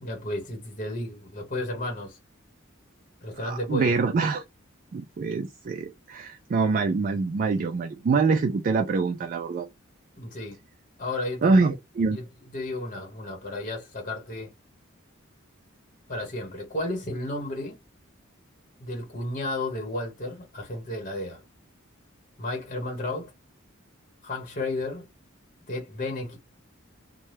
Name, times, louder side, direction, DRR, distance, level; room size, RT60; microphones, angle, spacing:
voice 1, 0.0-2.2 3.2-3.9 10.2-10.6 11.0-11.6 12.1-12.2 12.5-14.5 16.1-17.8 18.8-21.4 22.4-23.3 24.2-25.1 25.7-26.4, left 2 dB, 40° left, 1.0 m, -33 dB
voice 2, 3.4-4.4 4.9-9.7 11.4-12.2, right 4 dB, 40° right, 0.3 m, -25 dB
2.8 x 2.2 x 3.2 m
head